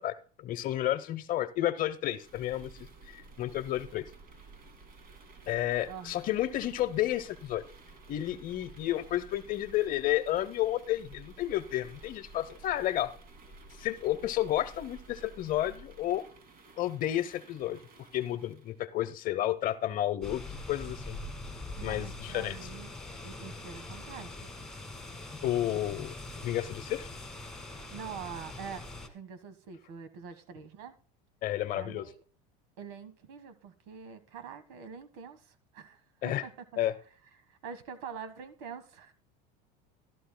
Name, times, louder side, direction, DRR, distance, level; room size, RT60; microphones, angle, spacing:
voice 1, 0.0-2.9 3.1-4.0 5.5-7.6 8.1-13.1 13.8-16.2 16.8-17.8 18.1-20.4 20.7-21.2 21.8-22.6 25.4-26.1 26.4-27.1 31.4-32.1 36.2-36.4 36.8-36.9, left 13 dB, 40° left, 0.9 m, -31 dB
sound 1, 2.1-18.8, right 3 dB, 45° right, 2.6 m, -53 dB
voice 2, 5.8-6.2 21.8-22.9 23.2-24.7 27.9-28.9 29.1-30.9 31.7-32.2 32.8-36.6 37.5-39.1, right 7 dB, 75° right, 1.5 m, -45 dB
sound 2, 20.2-29.1, left 2 dB, ahead, 1.9 m, -43 dB
14.5 x 12.5 x 2.2 m
supercardioid pair, 135°, 21 cm